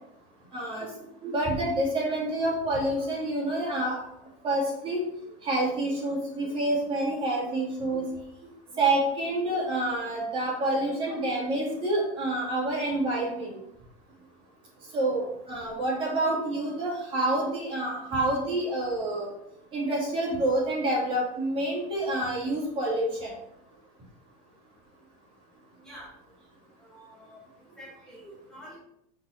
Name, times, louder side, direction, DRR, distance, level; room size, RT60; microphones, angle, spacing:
voice 1, 0.5-0.9 1.2-4.0 4.4-5.0 5.4-8.1 8.8-13.5 14.9-19.3 19.7-23.3, right 1 dB, 30° right, -4 dB, 3.2 m, -28 dB
voice 2, 25.8-26.1 26.8-27.4 27.8-28.8, equal, 5° left, -7 dB, 2.0 m, -47 dB
6.2 x 5.8 x 4.7 m, 0.77 s
supercardioid pair, 145°, 18 cm